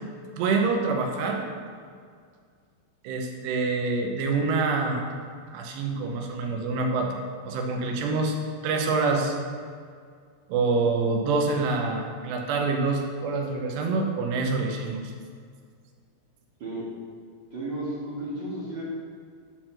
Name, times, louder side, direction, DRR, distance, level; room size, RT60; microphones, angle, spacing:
voice 1, 0.4-1.4 3.0-5.1 5.5-8.4 8.6-9.4 10.5-15.1, right 3 dB, 85° right, 2 dB, 3.1 m, -26 dB
voice 2, 17.5-18.8, right 1 dB, 55° right, -7 dB, 1.3 m, -33 dB
11.0 x 4.4 x 5.8 m, 2.1 s
omnidirectional pair, 4.8 m